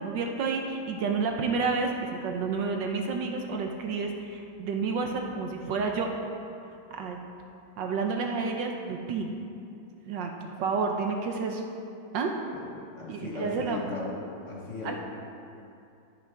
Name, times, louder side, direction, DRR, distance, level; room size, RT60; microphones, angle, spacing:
voice 1, 0.0-6.1 6.9-7.2 7.8-9.3 10.1-11.6 12.1-12.3 13.1-13.8 14.8-15.0, right 4 dB, 70° right, 3 dB, 1.3 m, -30 dB
voice 2, 12.5-14.2 14.4-15.0, left 3 dB, 40° left, -3 dB, 1.4 m, -37 dB
12.5 x 9.3 x 3.5 m, 2.6 s
omnidirectional pair, 2.2 m